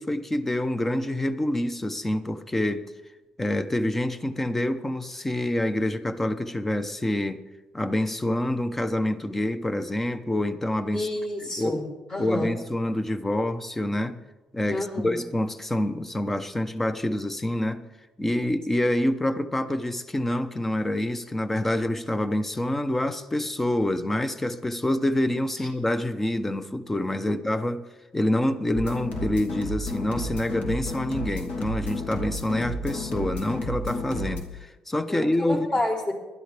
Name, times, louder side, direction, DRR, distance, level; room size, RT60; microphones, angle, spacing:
voice 1, 0.0-2.9 3.4-7.4 7.7-11.1 11.4-11.8 12.2-14.2 14.5-17.8 18.2-27.9 28.1-35.7, left 1 dB, 10° left, 11 dB, 0.8 m, -27 dB
voice 2, 10.9-12.5 14.7-15.1 35.1-36.1, left 1 dB, 40° left, -2 dB, 3.6 m, -29 dB
sound 1, 28.7-34.4, left 1 dB, 70° left, 2.8 m, -32 dB
20.0 x 12.0 x 3.4 m, 1.1 s
cardioid pair, 115°, 2 cm